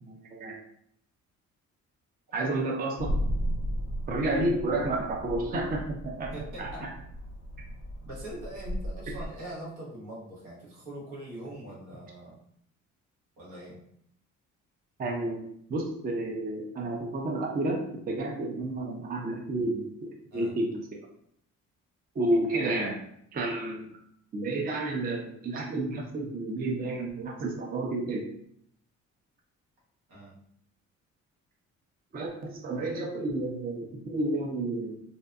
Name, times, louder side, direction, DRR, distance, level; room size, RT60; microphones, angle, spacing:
voice 1, 0.0-0.6 2.3-3.3 4.1-6.3 6.6-6.9 9.1-9.2 15.0-21.0 22.2-23.0 23.3-23.9 24.3-28.3 32.1-35.0, right 2 dB, 30° right, 0 dB, 0.5 m, -31 dB
sound 1, 3.0-9.3, equal, 40° left, 0.5 m, -35 dB
voice 2, 6.3-6.9 8.0-12.4 13.4-13.8 20.3-20.5 30.1-30.4, right 1 dB, 85° right, -5 dB, 1.1 m, -42 dB
2.6 x 2.1 x 2.4 m, 0.69 s
cardioid pair, 90°, 30 cm